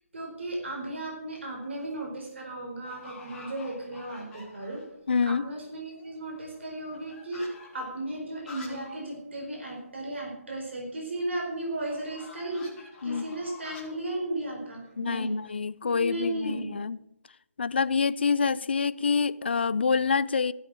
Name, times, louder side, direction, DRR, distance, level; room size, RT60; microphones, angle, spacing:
voice 1, 0.1-4.8 5.3-7.5 7.7-15.4 15.8-16.8, right 1 dB, 50° right, 4.6 m, -35 dB
sound 1, 0.7-1.0 1.5-2.0 2.2-2.3 2.8-5.0 5.4-5.5 5.7-9.1 9.4-9.5 9.8-9.9 11.8-15.5, left 3 dB, 5° left, 1.6 m, -49 dB
voice 2, 5.1-5.5 13.0-13.2 15.0-17.0 17.6-20.5, left 5 dB, 45° left, 0.5 m, -26 dB
15.0 x 7.1 x 8.8 m
hypercardioid pair, 175°, 8 cm